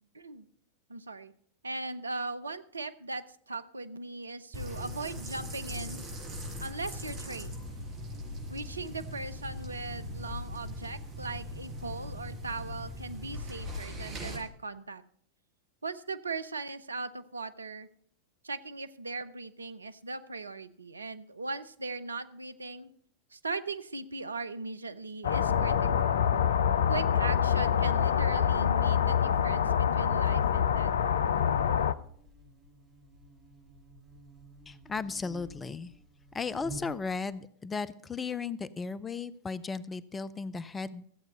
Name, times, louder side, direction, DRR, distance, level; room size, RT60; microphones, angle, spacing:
voice 1, 0.1-0.5 0.9-1.3 1.6-6.0 6.6-7.6 8.5-15.0 15.8-17.9 18.4-22.9 23.3-26.2 26.9-30.9, right 3 dB, 75° right, 12 dB, 0.6 m, -39 dB
sound 1, 4.5-14.4, left 1 dB, 40° right, 5.3 m, -40 dB
sound 2, 25.2-31.9, left 8 dB, 65° left, 0.5 m, -26 dB
Buzz, 26.0-37.4, right 1 dB, 5° right, 6.9 m, -52 dB
voice 2, 34.7-35.9 36.3-41.1, left 4 dB, 15° left, 16 dB, 0.5 m, -35 dB
14.0 x 8.1 x 5.3 m, 0.62 s
figure-of-eight pair, 90°, 0 cm